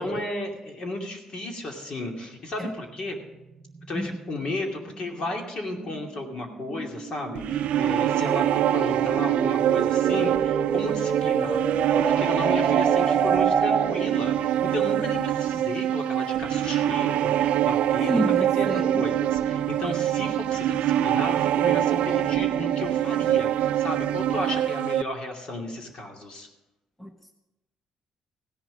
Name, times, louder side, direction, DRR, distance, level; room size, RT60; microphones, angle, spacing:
voice 1, 0.0-3.2 3.9-11.6 12.0-18.7 19.0-26.5, left 2 dB, 45° left, 1 dB, 2.6 m, -34 dB
sound 1, 2.9-14.2, right 5 dB, 40° right, 0.9 m, -29 dB
sound 2, 7.4-25.0, right 11 dB, 80° right, 0.4 m, -24 dB
voice 2, 18.1-19.0 27.0-27.3, right 1 dB, 5° left, 4 dB, 0.8 m, -30 dB
16.0 x 11.0 x 5.1 m, 1.0 s
cardioid pair, 160°, 2 cm